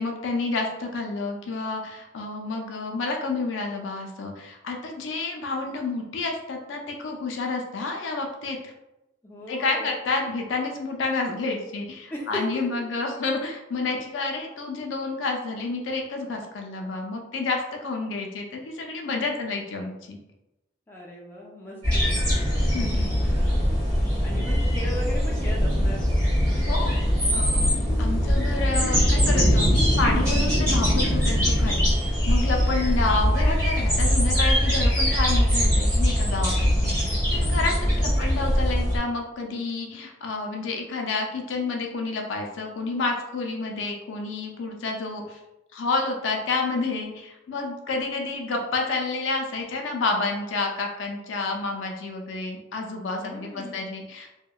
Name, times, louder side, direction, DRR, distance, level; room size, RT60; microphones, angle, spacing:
voice 1, 0.0-8.7 9.5-20.2 22.7-23.1 26.6-26.9 27.3-27.6 28.0-45.4 45.7-54.3, left 3 dB, 75° left, 2 dB, 0.4 m, -29 dB
voice 2, 9.2-9.9 12.1-12.6 20.9-22.0 24.2-26.1 37.8-38.1 53.2-53.8, left 1 dB, 10° left, -3 dB, 0.4 m, -36 dB
sound 1, 21.8-39.0, equal, 20° right, 1.2 m, -22 dB
2.7 x 2.1 x 2.3 m, 0.96 s
head